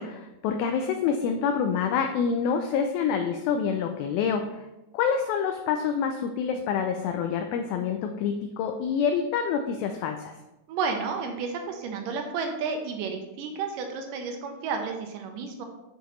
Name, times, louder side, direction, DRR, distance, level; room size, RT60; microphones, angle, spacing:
voice 1, 0.0-4.6 4.9-10.3, left 6 dB, 80° left, 5 dB, 2.2 m, -27 dB
voice 2, 10.7-15.7, right 5 dB, 80° right, 4 dB, 2.0 m, -31 dB
7.0 x 6.9 x 3.0 m, 0.99 s
omnidirectional pair, 4.5 m